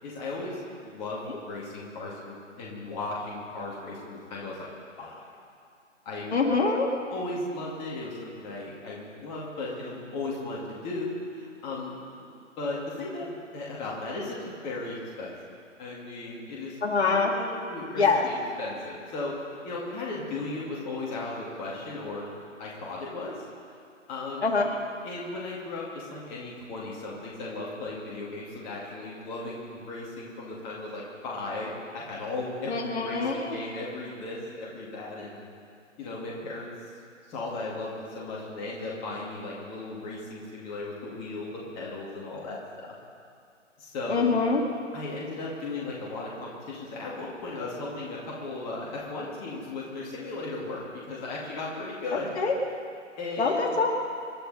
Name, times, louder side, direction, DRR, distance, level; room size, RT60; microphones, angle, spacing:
voice 1, 0.0-4.7 5.0-5.3 6.1-6.4 7.1-15.3 15.8-16.8 17.0-22.3 22.6-23.4 24.1-24.5 25.0-35.4 36.0-36.7 37.3-42.9 43.8-44.4 44.9-52.3 53.2-53.8, left 2 dB, 15° left, -4 dB, 2.1 m, -36 dB
voice 2, 6.3-6.9 16.8-17.3 18.0-18.2 24.4-24.7 32.7-33.5 44.1-44.6 52.4-52.5 53.4-53.9, left 4 dB, 55° left, 0 dB, 2.7 m, -24 dB
27.0 x 11.5 x 4.1 m, 2.3 s
figure-of-eight pair, 155°, 38 cm